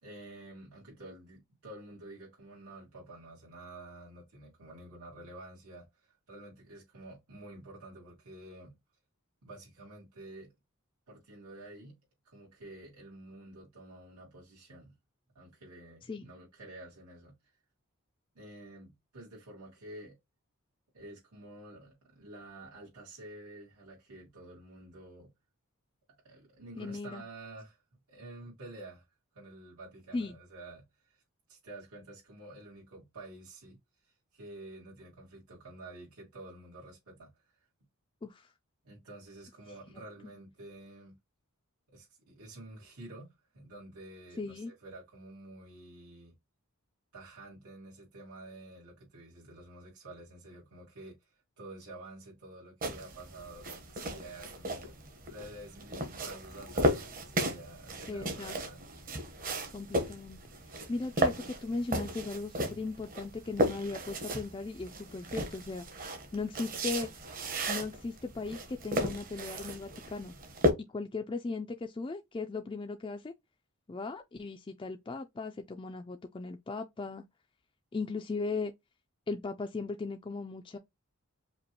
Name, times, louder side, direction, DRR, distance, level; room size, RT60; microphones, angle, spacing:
voice 1, 0.0-8.8 9.4-10.5 11.1-12.0 12.2-14.9 15.3-17.3 18.3-20.2 20.9-25.3 26.2-27.8 28.1-29.1 29.3-31.2 31.5-33.8 34.0-37.7 38.8-41.2 41.9-46.4 47.1-55.0 55.2-58.8, right 2 dB, 80° right, 2.1 m, -50 dB
voice 2, 26.8-27.2 30.1-30.4 38.2-38.5 44.4-44.7 58.1-58.6 59.7-60.4 60.9-65.9 66.3-67.1 67.7-70.4 70.9-73.3 73.9-77.2 77.9-78.7 79.3-80.8, left 3 dB, 20° left, 0.3 m, -37 dB
sound 1, 52.8-70.7, equal, 40° right, 1.0 m, -35 dB
5.1 x 2.3 x 2.9 m
head